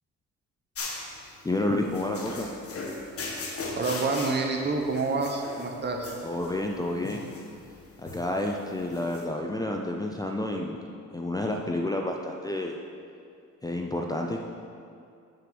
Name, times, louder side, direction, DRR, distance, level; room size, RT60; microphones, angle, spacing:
sound 1, 0.7-9.2, left 3 dB, 50° left, 1.5 m, -39 dB
voice 1, 1.4-2.5 6.2-7.3 8.0-10.7 11.1-12.8 13.6-14.4, left 1 dB, 10° left, 1 dB, 0.6 m, -30 dB
voice 2, 3.8-6.1, right 3 dB, 35° right, 2 dB, 1.2 m, -28 dB
6.8 x 6.7 x 6.0 m, 2.4 s
cardioid pair, 90°, 30 cm